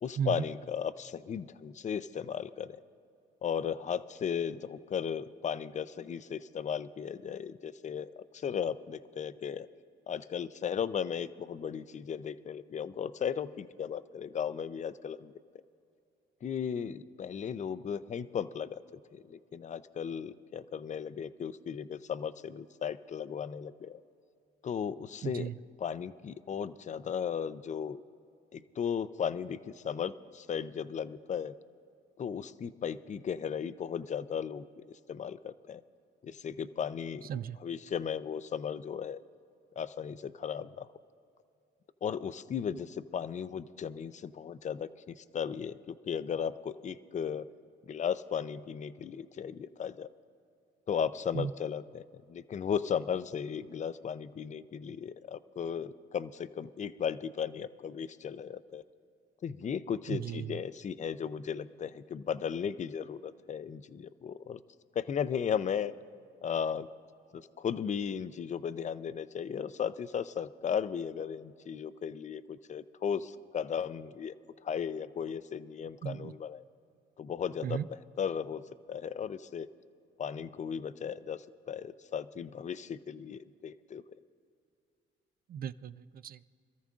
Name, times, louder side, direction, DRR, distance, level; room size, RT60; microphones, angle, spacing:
voice 1, 0.0-2.8 3.4-9.7 10.1-15.3 16.4-18.8 19.1-24.0 24.6-25.5 25.8-28.0 28.5-31.5 32.2-35.8 36.2-37.3 37.6-39.2 39.8-40.9 42.0-47.5 47.9-50.1 50.9-58.8 59.4-64.6 64.9-65.9 66.4-66.9 67.3-74.4 74.6-76.6 77.2-77.9 78.2-78.6 78.9-79.7 80.2-84.0, left 7 dB, 35° left, 14 dB, 0.5 m, -36 dB
voice 2, 25.2-25.6 37.3-37.6 51.3-51.5 60.1-60.6 76.0-76.3 77.6-77.9 85.5-86.4, right 8 dB, 50° right, 15 dB, 0.4 m, -35 dB
25.5 x 13.5 x 2.5 m, 2.5 s
cardioid pair, 90°, 20 cm